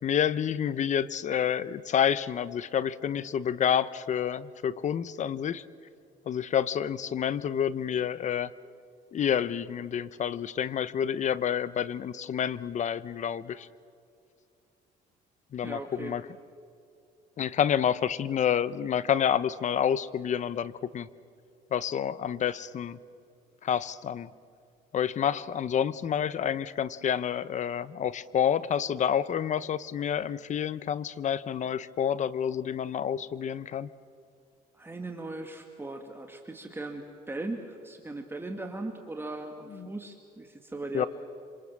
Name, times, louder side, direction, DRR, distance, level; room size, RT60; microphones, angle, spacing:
voice 1, 0.0-5.6 6.3-8.5 9.1-13.7 15.5-16.2 17.4-21.1 21.7-23.0 23.6-24.3 24.9-33.9 39.7-39.9 40.9-41.1, left 8 dB, 45° left, 17 dB, 0.9 m, -29 dB
voice 2, 15.6-16.2 34.7-41.1, right 2 dB, 15° right, 4 dB, 2.0 m, -38 dB
26.5 x 26.0 x 7.5 m, 2.5 s
cardioid pair, 110°, 17 cm